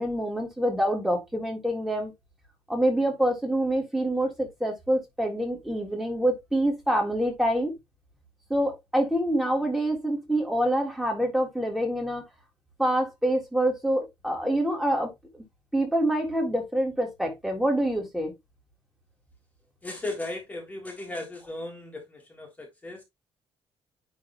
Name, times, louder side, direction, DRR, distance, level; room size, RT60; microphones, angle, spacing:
voice 1, 0.0-2.1 2.7-7.7 8.5-12.2 12.8-15.1 15.7-18.3, right 1 dB, 5° right, 1.9 m, -26 dB
voice 2, 19.8-23.0, left 2 dB, 15° left, 1.6 m, -36 dB
9.8 x 3.4 x 3.2 m
cardioid pair, 175°, 11 cm